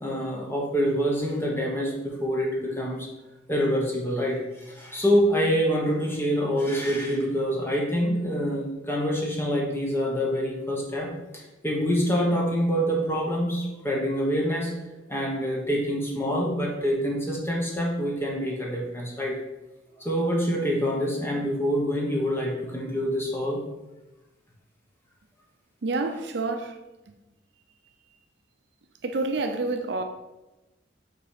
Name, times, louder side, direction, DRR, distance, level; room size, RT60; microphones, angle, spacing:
voice 1, 0.0-3.1 3.5-14.7 15.1-19.3 20.0-23.6, equal, 10° left, 1.1 m, -26 dB
voice 2, 25.8-26.8 29.0-30.0, right 3 dB, 55° right, 0.5 m, -28 dB
5.7 x 4.0 x 4.9 m
head